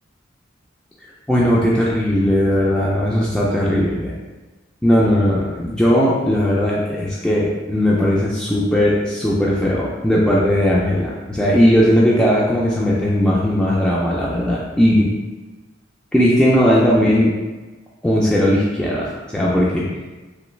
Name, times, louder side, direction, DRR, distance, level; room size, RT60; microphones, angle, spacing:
voice 1, 1.3-4.2 4.8-15.1 16.1-17.3 18.0-19.8, equal, 5° left, -6 dB, 0.3 m, -17 dB
3.0 x 2.6 x 3.1 m, 1.2 s
head